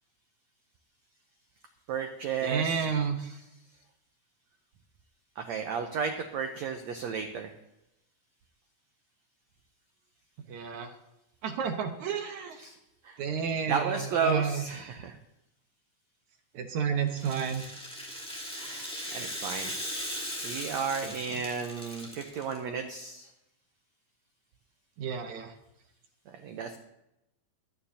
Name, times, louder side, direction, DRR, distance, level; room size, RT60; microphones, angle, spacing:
voice 1, 1.9-2.8 5.4-7.5 12.6-12.7 13.0-13.2 13.7-15.2 18.6-19.7 20.4-23.3 26.3-26.8, right 6 dB, 90° right, 5 dB, 1.5 m, -33 dB
voice 2, 2.4-3.3 10.5-10.9 11.4-12.6 13.2-15.0 16.5-17.7 21.0-21.4 25.0-25.5, right 6 dB, 65° right, 4 dB, 2.0 m, -31 dB
Rattle (instrument), 17.1-22.6, equal, ahead, 1.6 m, -38 dB
24.5 x 9.0 x 2.8 m, 0.89 s
omnidirectional pair, 4.3 m